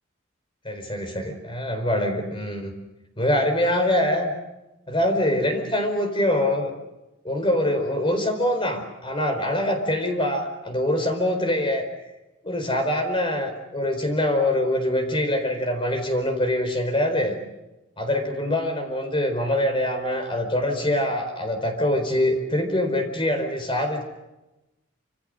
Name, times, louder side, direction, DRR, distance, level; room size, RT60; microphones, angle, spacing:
voice 1, 0.6-2.7 3.2-4.3 4.9-6.7 7.2-11.8 12.4-17.3 18.0-24.0, left 1 dB, 25° left, 6 dB, 4.5 m, -24 dB
27.5 x 26.5 x 6.5 m, 1.0 s
head